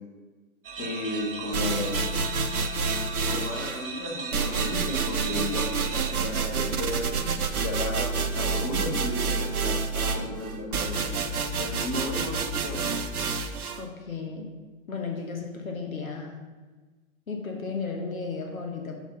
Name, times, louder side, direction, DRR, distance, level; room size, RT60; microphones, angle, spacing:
sound 1, 0.6-6.1, right 5 dB, 40° right, 0.8 m, -37 dB
voice 1, 0.8-2.1 3.3-11.0 11.6-12.9, left 2 dB, 25° left, -2 dB, 1.4 m, -34 dB
sound 2, 1.5-3.8 4.3-13.8, right 4 dB, 85° right, 0.8 m, -28 dB
voice 2, 13.8-14.5 14.9-16.4 17.3-19.0, left 4 dB, 70° left, 2 dB, 1.5 m, -34 dB
6.4 x 4.9 x 5.6 m, 1.3 s
figure-of-eight pair, 140°, 42 cm